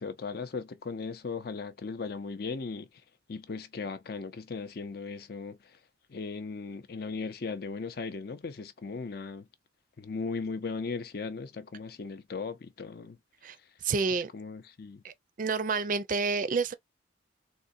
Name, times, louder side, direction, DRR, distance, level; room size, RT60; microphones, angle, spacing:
voice 1, 0.0-2.9 3.3-5.6 6.1-9.5 10.0-13.2 14.3-15.0, left 4 dB, 55° left, 0.5 m, -37 dB
voice 2, 13.8-14.3 15.0-16.7, right 4 dB, 45° right, 0.4 m, -29 dB
3.7 x 2.1 x 2.5 m
head